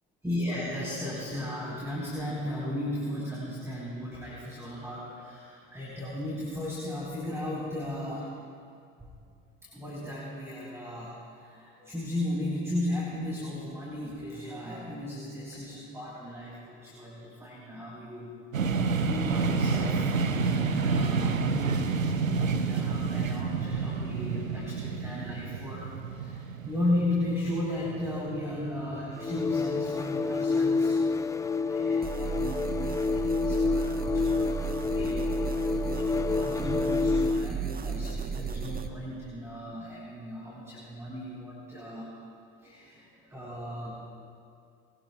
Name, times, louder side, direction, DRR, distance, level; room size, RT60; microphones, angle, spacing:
voice 1, 0.2-8.3 9.6-18.3 18.6-31.1 31.6-42.1 42.6-44.0, left 1 dB, 5° right, -6 dB, 4.2 m, -36 dB
sound 1, 18.5-30.3, right 4 dB, 85° right, 0.7 m, -29 dB
sound 2, 29.2-37.6, left 4 dB, 10° left, 0.4 m, -28 dB
sound 3, 32.0-38.9, right 6 dB, 25° right, 1.1 m, -34 dB
22.0 x 18.0 x 2.3 m, 2.4 s
figure-of-eight pair, 55°, 39 cm